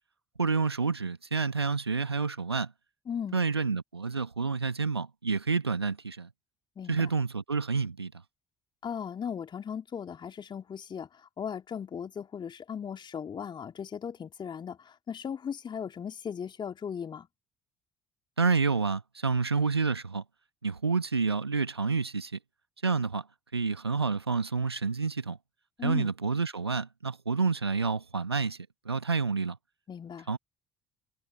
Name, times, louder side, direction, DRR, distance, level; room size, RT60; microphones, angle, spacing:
voice 1, 0.4-2.7 3.3-6.3 6.9-8.1 18.4-20.2 20.6-22.4 22.8-23.3 23.5-25.4 25.8-29.6 30.3-30.4, right 4 dB, 85° right, 1.5 m, -29 dB
voice 2, 3.1-3.4 6.8-7.1 8.8-17.3 25.8-26.1 29.9-30.3, left 7 dB, 35° left, 3.5 m, -37 dB
figure-of-eight pair, 50°, 13 cm